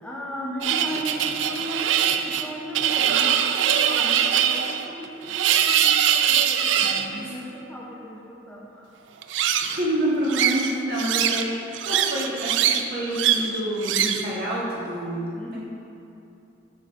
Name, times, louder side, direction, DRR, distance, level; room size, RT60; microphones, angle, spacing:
voice 1, 0.0-8.9 15.3-15.6, equal, 5° left, -5 dB, 0.6 m, -36 dB
sound 1, 0.6-7.1 9.2-9.8 10.3-11.5 11.7-12.8 13.1-13.5 13.8-14.3, right 9 dB, 75° right, 0.3 m, -22 dB
voice 2, 6.7-7.3 9.3-11.5 11.8-15.6, right 1 dB, 55° right, -6 dB, 1.5 m, -28 dB
6.5 x 5.1 x 4.2 m, 2.7 s
head